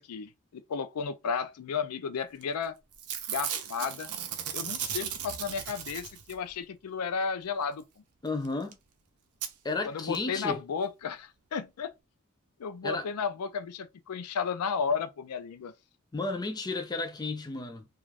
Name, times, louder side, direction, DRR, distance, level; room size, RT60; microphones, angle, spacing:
voice 1, 0.0-2.7 3.3-4.1 4.5-7.8 9.8-11.9 12.6-15.7, left 6 dB, 90° left, 0.4 m, -33 dB
Packing tape duct tape / Tearing, 2.4-2.7 2.9-6.5 8.4-8.5 8.7-8.8 9.4-9.5 10.1-10.2 10.5-10.6, right 9 dB, 85° right, 0.6 m, -36 dB
voice 2, 8.2-8.8 9.6-10.6 12.8-13.1 16.1-17.9, left 3 dB, 20° left, 0.4 m, -33 dB
2.4 x 2.3 x 3.2 m
head